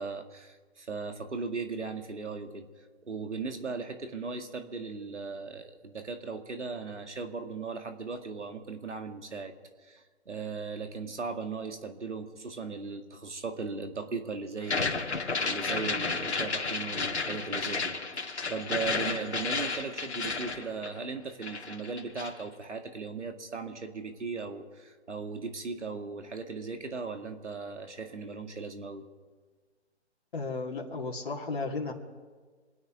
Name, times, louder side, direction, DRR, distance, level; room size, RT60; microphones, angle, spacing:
voice 1, 0.0-2.7 3.0-9.5 9.8-29.1, right 4 dB, 80° right, 6 dB, 2.2 m, -38 dB
sound 1, 14.6-21.2 21.4-22.4, left 4 dB, 70° left, 2.2 m, -32 dB
voice 2, 30.3-31.9, left 3 dB, 50° left, -4 dB, 2.4 m, -34 dB
27.5 x 9.9 x 5.0 m, 1.5 s
figure-of-eight pair, 160°, 35 cm